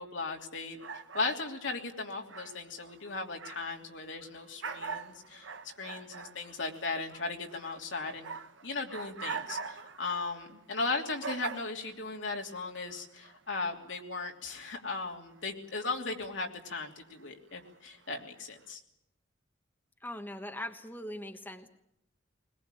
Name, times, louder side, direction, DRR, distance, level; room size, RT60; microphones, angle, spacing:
voice 1, 0.0-5.5 5.8-8.3 8.6-18.8, left 3 dB, 75° left, 2 dB, 3.0 m, -37 dB
sound 1, 0.8-3.8 4.2-12.5 12.9-13.4 14.1-14.2 14.5-15.0 15.8-16.1 16.8-17.2 17.6-18.2, right 5 dB, 75° right, 1.3 m, -44 dB
voice 2, 20.0-21.7, left 1 dB, 10° left, 5 dB, 1.2 m, -40 dB
21.0 x 21.0 x 9.2 m, 0.79 s
head